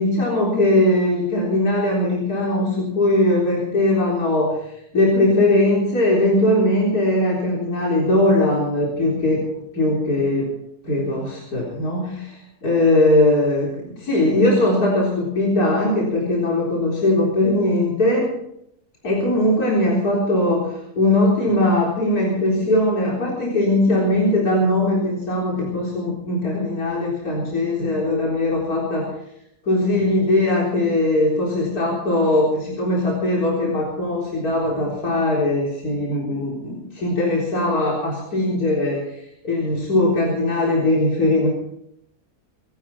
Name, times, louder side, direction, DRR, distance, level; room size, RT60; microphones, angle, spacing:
voice 1, 0.0-9.5 9.7-10.5 10.8-18.3 19.0-29.1 29.6-39.1 39.4-41.5, left 1 dB, 80° left, -4 dB, 4.6 m, -20 dB
24.5 x 13.0 x 4.4 m, 0.76 s
omnidirectional pair, 1.6 m